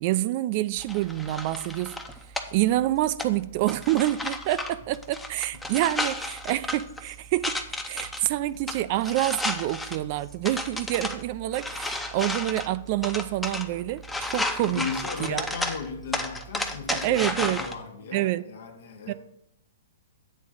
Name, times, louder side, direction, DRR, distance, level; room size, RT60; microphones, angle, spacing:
voice 1, 0.0-2.0 2.5-7.6 7.9-14.9 15.2-15.5 16.9-17.6 18.1-18.5 19.1-19.2, right 15 dB, 45° right, 0.3 m, -27 dB
sound 1, 0.8-17.7, left 1 dB, 5° left, 0.7 m, -34 dB
voice 2, 14.6-19.1, left 5 dB, 65° left, 1.1 m, -36 dB
8.5 x 3.6 x 6.4 m
hypercardioid pair, 125°, 0 cm